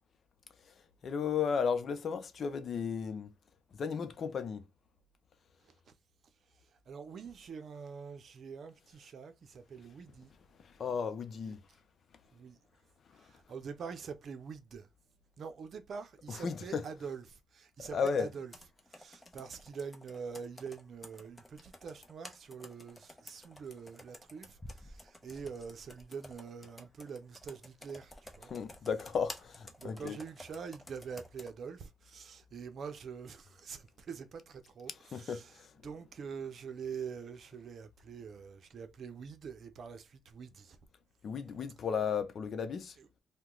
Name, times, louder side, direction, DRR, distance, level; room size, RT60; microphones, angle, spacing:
voice 1, 1.0-3.3 3.7-4.6 10.6-11.6 13.1-13.3 16.3-16.8 17.8-18.3 28.5-30.2 35.0-35.7 41.2-43.0, left 6 dB, 60° left, 0.6 m, -34 dB
voice 2, 6.9-10.3 11.4-11.6 12.3-12.6 13.2-14.9 15.4-18.5 18.9-28.5 29.8-35.5 35.8-40.8 43.0-43.1, right 6 dB, 60° right, 0.6 m, -45 dB
Computer keyboard, 18.0-31.5, left 1 dB, 15° left, 0.8 m, -53 dB
2.8 x 2.2 x 3.7 m
cardioid pair, 85°, 0 cm